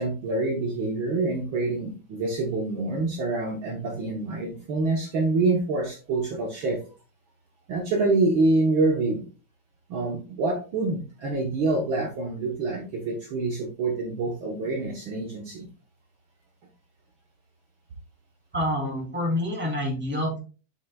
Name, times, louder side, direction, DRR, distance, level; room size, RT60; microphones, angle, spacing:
voice 1, 0.0-6.8 7.7-9.2 9.9-15.7, right 3 dB, 75° right, 1 dB, 1.1 m, -26 dB
voice 2, 18.5-20.4, left 1 dB, 5° right, -2 dB, 2.2 m, -27 dB
7.9 x 7.6 x 2.3 m, 0.35 s
omnidirectional pair, 3.8 m